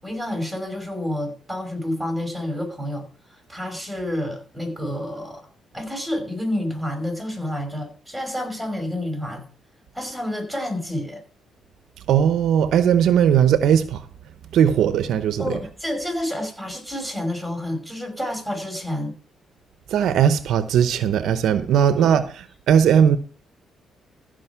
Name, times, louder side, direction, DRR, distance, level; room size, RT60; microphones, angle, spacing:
voice 1, 0.0-5.5 5.7-9.4 9.9-11.2 15.4-19.1 22.0-22.2, left 1 dB, ahead, 5.4 m, -29 dB
voice 2, 12.1-14.0 14.5-15.6 19.9-23.2, right 8 dB, 75° right, 0.8 m, -18 dB
15.0 x 5.4 x 5.7 m
cardioid pair, 90°, 0 cm